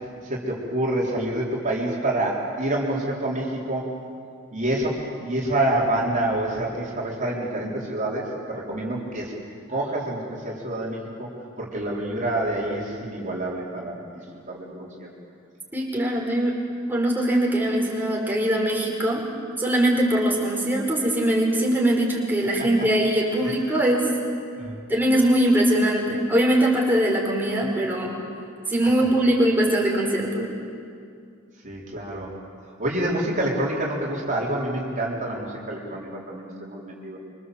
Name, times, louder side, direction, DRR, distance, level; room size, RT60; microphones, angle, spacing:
voice 1, 0.2-3.9 4.5-9.3 9.7-11.3 11.6-14.0 14.3-15.1 22.8-22.9 24.6-24.8 31.6-32.3 32.7-37.2, right 1 dB, 35° right, -4 dB, 4.1 m, -27 dB
voice 2, 15.7-16.5 16.9-19.2 19.6-24.1 24.9-28.1 28.7-30.5, right 1 dB, 10° right, -2 dB, 4.9 m, -21 dB
26.0 x 25.0 x 7.9 m, 2.3 s
head